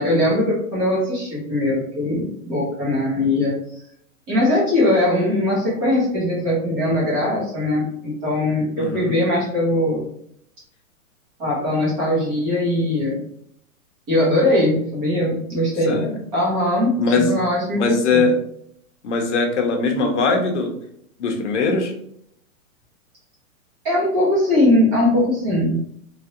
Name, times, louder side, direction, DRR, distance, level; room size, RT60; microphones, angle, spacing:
voice 1, 0.0-3.8 4.3-10.1 11.4-13.2 14.1-16.1 16.3-18.3 23.8-25.8, left 1 dB, 15° right, -5 dB, 0.8 m, -20 dB
voice 2, 8.8-9.2 15.9-16.2 17.0-17.3 17.7-18.3 19.0-20.7 21.2-21.9, left 3 dB, 55° left, 3 dB, 0.8 m, -20 dB
3.1 x 2.5 x 2.8 m, 0.69 s
hypercardioid pair, 170°, 43 cm